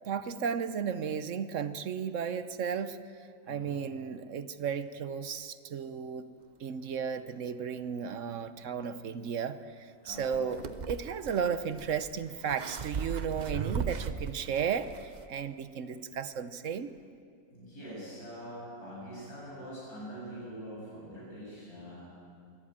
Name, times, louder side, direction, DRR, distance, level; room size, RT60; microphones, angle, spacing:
voice 1, 0.0-3.0 3.5-6.3 6.6-16.9, right 7 dB, 60° right, 12 dB, 1.2 m, -34 dB
voice 2, 3.4-3.8 10.0-10.5 17.5-22.1, equal, 80° left, -6 dB, 8.2 m, -44 dB
sound 1, 10.1-15.3, right 6 dB, 40° right, 0.7 m, -38 dB
22.0 x 17.0 x 8.8 m, 2.3 s
omnidirectional pair, 1.6 m